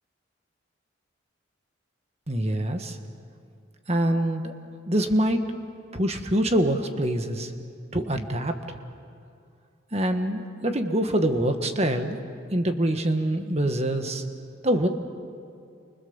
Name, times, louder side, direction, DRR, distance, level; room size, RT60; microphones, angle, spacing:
voice 1, 2.3-3.0 3.9-4.5 4.9-5.4 5.9-7.5 7.9-8.6 9.9-14.2 14.6-14.9, right 1 dB, 30° right, 6 dB, 1.6 m, -25 dB
30.0 x 25.0 x 7.2 m, 2.4 s
head